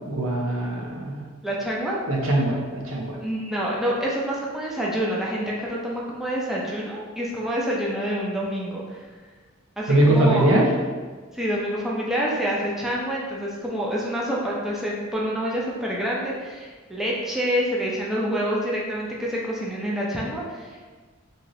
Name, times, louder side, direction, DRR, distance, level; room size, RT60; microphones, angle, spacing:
voice 1, 0.1-1.2 2.1-3.2 9.9-10.7, right 1 dB, 75° right, -2 dB, 0.6 m, -21 dB
voice 2, 1.4-2.0 3.2-9.0 9.8-10.5 11.3-20.8, equal, ahead, -5 dB, 0.4 m, -27 dB
2.7 x 2.5 x 3.0 m, 1.4 s
head